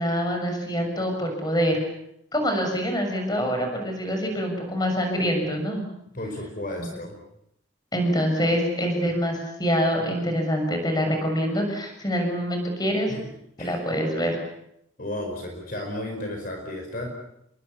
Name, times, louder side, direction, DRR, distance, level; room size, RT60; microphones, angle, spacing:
voice 1, 0.0-1.8 2.3-5.8 6.8-6.9 7.9-13.1 13.6-14.4, equal, 20° left, 4 dB, 6.9 m, -25 dB
voice 2, 6.1-7.2 13.1-13.3 13.6-13.8 15.0-17.1, left 1 dB, 45° left, 3 dB, 5.0 m, -33 dB
30.0 x 23.0 x 7.1 m, 0.77 s
head